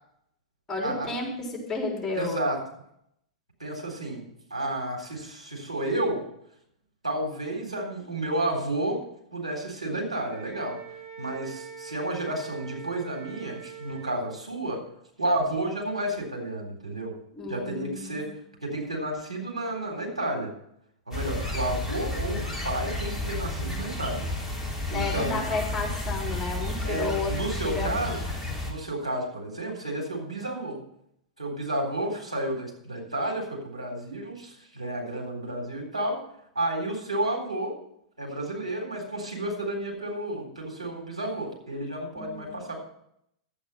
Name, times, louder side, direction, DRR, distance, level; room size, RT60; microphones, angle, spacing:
voice 1, 0.7-2.4 17.4-18.3 24.9-27.9 42.1-42.6, left 3 dB, 10° left, -1 dB, 4.1 m, -32 dB
voice 2, 2.1-2.6 3.6-4.2 4.5-6.2 7.0-9.0 9.3-10.8 11.2-14.8 15.2-17.1 17.5-18.3 18.6-20.5 21.1-24.2 24.9-25.4 26.8-28.2 28.6-30.8 31.4-36.2 36.6-37.7 38.2-42.8, right 1 dB, 85° right, -1 dB, 3.7 m, -31 dB
Wind instrument woodwind instrument, 10.3-14.2, right 6 dB, 35° right, 2.9 m, -43 dB
sound 1, 21.1-28.7, left 2 dB, 15° right, 3.6 m, -32 dB
12.0 x 8.6 x 5.5 m, 0.73 s
figure-of-eight pair, 95°, 3 cm